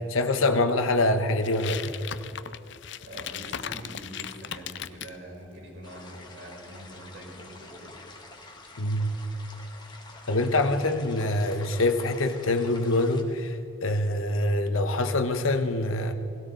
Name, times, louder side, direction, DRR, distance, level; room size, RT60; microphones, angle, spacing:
voice 1, 0.1-1.8 8.8-9.1 10.3-16.1, left 2 dB, 90° left, 7 dB, 1.2 m, -25 dB
sound 1, 1.4-5.2, left 9 dB, 60° left, 0.5 m, -37 dB
voice 2, 3.0-8.0, right 1 dB, 65° right, -2 dB, 4.8 m, -44 dB
sound 2, 5.8-13.2, left 3 dB, 20° left, 1.5 m, -48 dB
19.0 x 16.5 x 4.0 m, 2.6 s
head